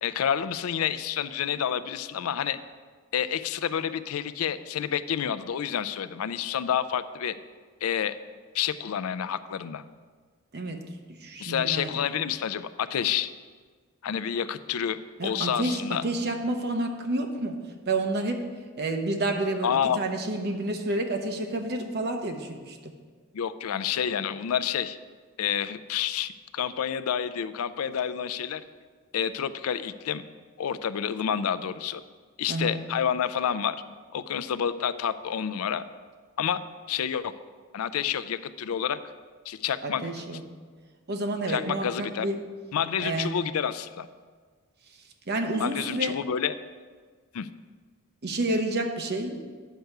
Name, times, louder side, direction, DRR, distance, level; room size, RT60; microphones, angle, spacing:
voice 1, 0.0-2.6 3.1-7.3 7.8-8.2 8.5-9.8 11.4-13.3 14.0-16.0 19.6-20.0 23.3-25.0 25.4-28.6 29.1-30.2 30.6-32.0 32.4-33.8 34.1-35.8 36.4-36.6 36.9-37.3 37.7-39.0 39.5-40.0 41.5-42.3 42.7-44.1 45.6-46.5 47.3-47.5, left 8 dB, 85° left, 13 dB, 0.4 m, -29 dB
voice 2, 11.2-11.9 15.2-17.6 17.9-18.4 18.8-22.9 32.5-32.8 39.8-40.4 41.1-42.4 43.0-43.4 45.3-46.1 48.2-49.4, right 2 dB, 50° right, 4 dB, 0.9 m, -29 dB
9.1 x 4.7 x 6.6 m, 1.5 s
head